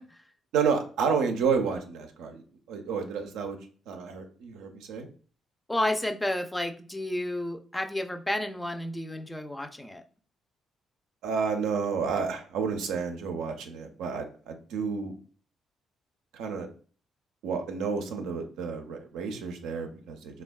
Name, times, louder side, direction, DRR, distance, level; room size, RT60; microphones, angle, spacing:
voice 1, 0.5-3.6 3.9-5.1 11.2-15.1 16.3-16.7 17.4-20.4, right 5 dB, 85° right, 4 dB, 0.5 m, -30 dB
voice 2, 5.7-10.0, left 1 dB, 10° left, 6 dB, 0.4 m, -31 dB
3.3 x 2.2 x 2.2 m, 0.41 s
supercardioid pair, 70°, 0 cm